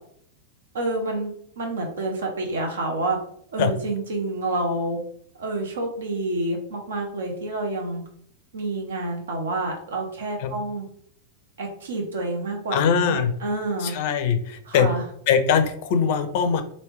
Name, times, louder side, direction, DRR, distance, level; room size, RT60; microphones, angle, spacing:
voice 1, 0.7-3.2 3.5-5.0 5.4-8.0 8.5-10.9 11.6-13.9 14.7-15.0, right 2 dB, 65° right, 2 dB, 0.8 m, -28 dB
voice 2, 12.7-13.3 13.8-14.9 15.3-16.6, left 7 dB, 50° left, 8 dB, 0.4 m, -21 dB
3.1 x 2.7 x 3.1 m, 0.66 s
figure-of-eight pair, 90°, 0 cm